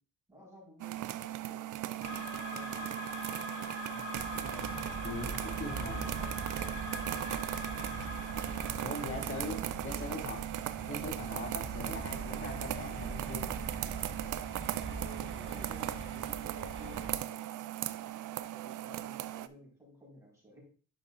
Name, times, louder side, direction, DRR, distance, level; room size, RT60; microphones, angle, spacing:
voice 1, 0.3-2.9 4.7-6.8 7.6-8.8 9.1-9.7 14.8-17.4 17.9-18.2 18.5-20.6, equal, 10° right, -3 dB, 4.2 m, -54 dB
sound 1, 0.8-19.5, right 13 dB, 70° right, 0.5 m, -38 dB
sound 2, 2.0-9.7, left 2 dB, 90° left, 4.4 m, -43 dB
sound 3, 4.1-17.2, right 4 dB, 35° right, 1.2 m, -42 dB
voice 2, 4.3-4.7 5.0-6.1 8.8-9.6 9.8-10.4 10.9-13.5, left 3 dB, 40° left, 0 dB, 2.1 m, -41 dB
11.0 x 5.6 x 2.5 m, 0.39 s
cardioid pair, 125°, 32 cm